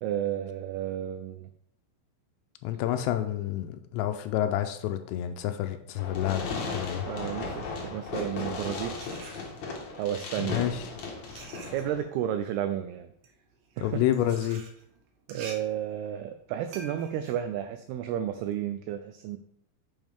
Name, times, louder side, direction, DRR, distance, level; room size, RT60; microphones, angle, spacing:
voice 1, 0.0-1.5 7.1-9.1 10.0-10.7 11.7-13.1 13.8-14.0 15.3-19.4, right 10 dB, 90° right, 9 dB, 2.2 m, -32 dB
voice 2, 2.6-6.5 6.7-7.0 10.4-10.8 13.8-14.6, left 12 dB, 85° left, 8 dB, 2.7 m, -29 dB
Fireworks, 6.0-12.0, left 4 dB, 60° left, 2.1 m, -36 dB
sound 1, 7.9-9.9 10.7-18.6, right 4 dB, 70° right, 3.0 m, -48 dB
9.0 x 7.2 x 3.5 m, 0.70 s
omnidirectional pair, 5.2 m